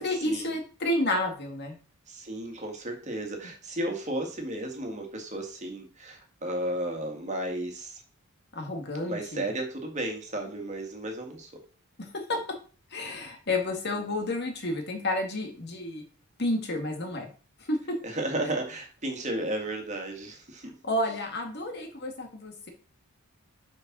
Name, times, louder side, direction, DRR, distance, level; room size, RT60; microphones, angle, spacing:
voice 1, 0.0-1.8 8.5-9.4 12.0-12.6 12.9-16.0 16.4-17.3 17.6-18.0 20.8-22.7, left 1 dB, 50° left, 4 dB, 1.9 m, -30 dB
voice 2, 2.1-8.0 9.0-11.6 18.0-20.8, right 1 dB, 35° right, 3 dB, 2.0 m, -34 dB
6.7 x 5.5 x 6.0 m, 0.37 s
head